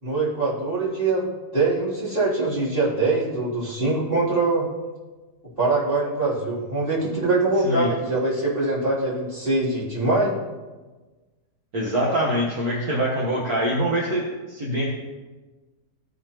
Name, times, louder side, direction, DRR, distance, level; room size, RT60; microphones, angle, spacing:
voice 1, 0.0-1.3 1.5-4.7 5.6-10.3, right 2 dB, 30° right, -9 dB, 3.2 m, -23 dB
voice 2, 11.7-14.2 14.5-14.9, equal, 65° right, -4 dB, 1.7 m, -24 dB
15.5 x 5.2 x 3.0 m, 1.2 s
omnidirectional pair, 1.8 m